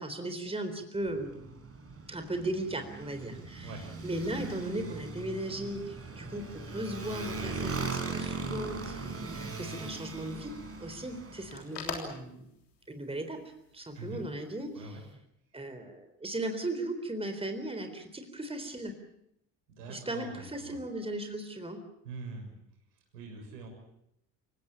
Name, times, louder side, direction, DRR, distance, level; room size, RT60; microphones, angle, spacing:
voice 1, 0.0-1.4 2.1-3.7 4.0-10.5 10.8-12.5 12.9-13.4 13.7-15.0 15.5-18.9 19.9-21.8, right 1 dB, 10° right, 7 dB, 3.9 m, -37 dB
Motorcycle, 1.0-11.7, right 4 dB, 30° right, 5.1 m, -39 dB
sound 1, 9.1-15.2, left 5 dB, 80° left, 3.6 m, -47 dB
voice 2, 19.7-20.8 22.0-22.5 23.1-23.7, right 3 dB, 75° right, 2 dB, 6.9 m, -43 dB
28.0 x 16.5 x 8.7 m, 0.78 s
figure-of-eight pair, 50°, 49 cm